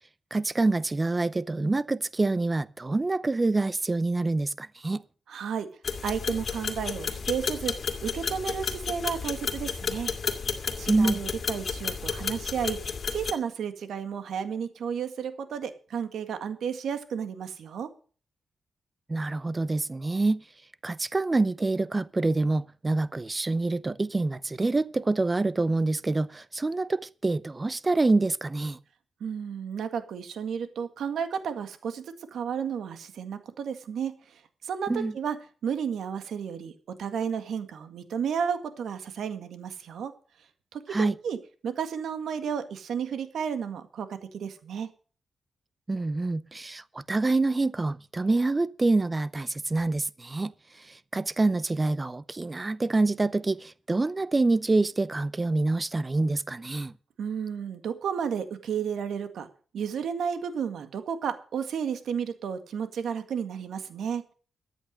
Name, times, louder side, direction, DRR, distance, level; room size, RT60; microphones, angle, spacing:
voice 1, 0.3-5.0 10.9-11.2 19.1-20.4 20.8-28.8 34.9-35.1 40.9-41.2 45.9-50.5 50.8-56.9, right 2 dB, 25° right, 0.6 m, -26 dB
voice 2, 5.3-5.7 6.0-7.7 8.0-10.1 10.8-12.8 13.1-17.9 29.2-32.0 32.3-34.1 34.6-35.4 35.6-36.7 37.0-40.1 40.7-41.4 41.6-44.9 57.2-59.5 59.7-64.2, right 7 dB, 80° right, 1.9 m, -32 dB
sound 1, 5.8-13.3, left 5 dB, 55° left, 2.3 m, -32 dB
14.0 x 9.3 x 6.4 m
cardioid pair, 85°, 0 cm